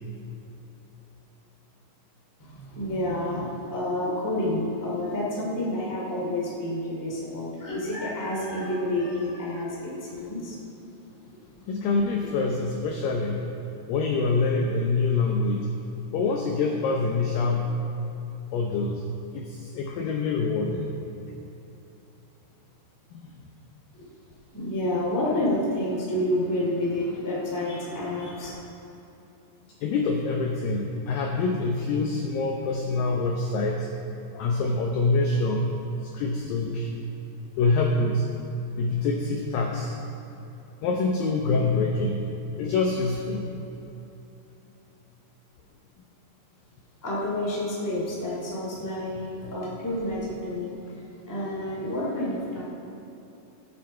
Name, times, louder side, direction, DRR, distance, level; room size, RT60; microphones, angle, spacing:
voice 1, 2.4-10.6 24.0-24.1 24.5-28.6 47.0-50.9 51.3-52.6, left 1 dB, 5° left, -5 dB, 1.4 m, -29 dB
voice 2, 11.7-13.5 13.9-15.7 16.1-17.8 18.5-19.0 19.3-20.9 23.2-23.3 29.8-33.9 34.3-36.9 37.6-38.3 38.8-40.0 40.8-43.6 49.4-49.5, left 3 dB, 85° left, 1 dB, 2.0 m, -25 dB
17.5 x 8.1 x 4.5 m, 3.0 s
omnidirectional pair, 5.1 m